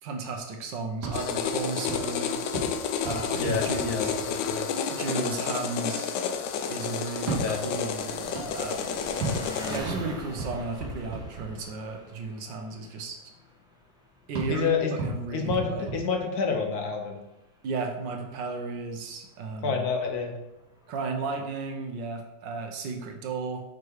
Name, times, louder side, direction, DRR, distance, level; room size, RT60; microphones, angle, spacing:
voice 1, 0.0-2.3 3.0-4.2 4.9-6.1 6.7-9.0 9.7-13.2 14.3-15.9 17.6-19.9 20.9-23.6, right 4 dB, 80° right, 3 dB, 1.5 m, -34 dB
sound 1, 0.9-4.8 7.1-12.0 14.3-16.8, right 2 dB, 65° right, 2.4 m, -36 dB
sound 2, 1.1-9.8, left 7 dB, 85° left, 1.3 m, -30 dB
voice 2, 3.4-4.7 7.4-7.6 14.5-14.9 15.3-17.2 19.6-20.3, left 5 dB, 60° left, 3 dB, 1.5 m, -28 dB
Engine, 4.9-21.4, left 2 dB, 5° right, 0.7 m, -47 dB
5.8 x 5.0 x 4.7 m, 0.95 s
omnidirectional pair, 1.9 m